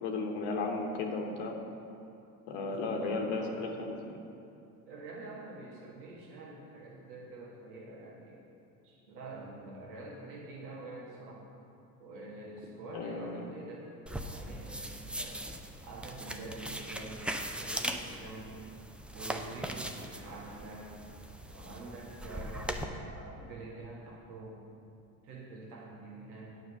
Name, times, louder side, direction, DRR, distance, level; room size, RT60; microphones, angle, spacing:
voice 1, 0.0-1.5 2.5-4.2 12.9-13.4, left 3 dB, 65° left, 2 dB, 1.2 m, -34 dB
voice 2, 2.6-3.6 4.8-8.4 8.8-11.5 12.0-13.9 14.2-15.5 15.8-17.3 17.6-18.6 19.1-21.0 21.5-24.7 25.2-26.5, right 2 dB, 75° right, -4 dB, 1.7 m, -46 dB
sound 1, 14.1-22.8, right 1 dB, 5° right, 0.4 m, -40 dB
9.2 x 5.3 x 6.6 m, 2.7 s
hypercardioid pair, 65°, 47 cm